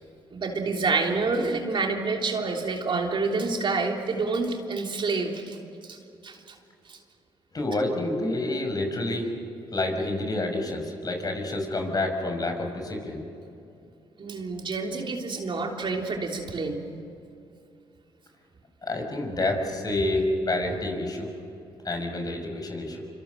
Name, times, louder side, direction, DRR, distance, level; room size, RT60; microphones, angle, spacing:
voice 1, 0.3-5.6 5.8-6.0 6.2-6.6 6.8-7.0 14.2-16.8, right 3 dB, 50° right, 2 dB, 3.2 m, -28 dB
voice 2, 7.5-9.3 9.7-13.2 18.8-21.3 21.8-23.0, left 2 dB, 35° left, 4 dB, 6.1 m, -28 dB
26.0 x 25.5 x 6.5 m, 2.6 s
supercardioid pair, 55°, 11 cm